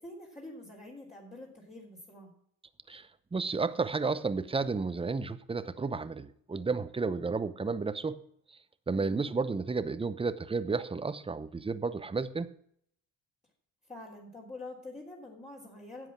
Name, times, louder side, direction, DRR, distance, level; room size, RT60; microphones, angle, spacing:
voice 1, 0.0-2.3 8.9-9.3 13.9-16.1, left 2 dB, 20° left, -5 dB, 3.2 m, -46 dB
voice 2, 2.9-8.2 8.9-12.5, right 4 dB, 20° right, 14 dB, 0.8 m, -32 dB
10.5 x 7.9 x 6.1 m, 0.67 s
cardioid pair, 90°, 30 cm